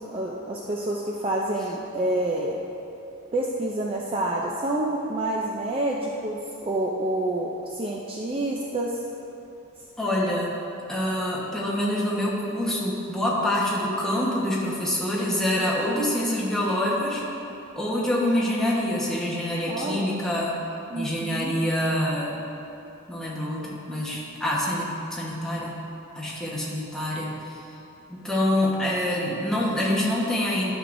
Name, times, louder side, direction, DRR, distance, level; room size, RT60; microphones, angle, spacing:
voice 1, 0.0-2.6 3.3-8.9 19.7-20.1 20.9-21.5, right 1 dB, 25° right, -2 dB, 0.4 m, -28 dB
voice 2, 10.0-10.6 10.9-17.2 17.7-20.6 20.9-22.4 23.1-25.8 26.1-27.6 28.1-30.7, left 1 dB, 5° left, -6 dB, 1.2 m, -26 dB
12.0 x 6.2 x 2.6 m, 2.9 s
head